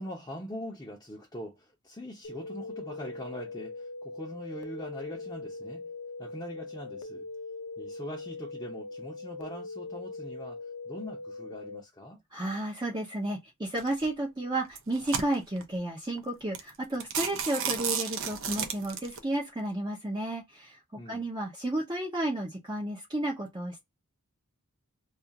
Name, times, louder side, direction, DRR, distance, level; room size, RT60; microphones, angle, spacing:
voice 1, 0.0-5.9 6.2-7.3 7.8-12.2 21.0-21.2, equal, 15° left, 0.7 m, -42 dB
sound 1, 2.2-11.8, left 3 dB, 80° left, 0.5 m, -41 dB
voice 2, 12.3-20.8 21.1-23.8, right 1 dB, 20° right, 0.6 m, -32 dB
sound 2, 13.8-14.1 14.6-15.6 16.2-16.3 16.5-16.7 17.0-19.2, right 7 dB, 60° right, 0.6 m, -32 dB
2.4 x 2.4 x 2.7 m
head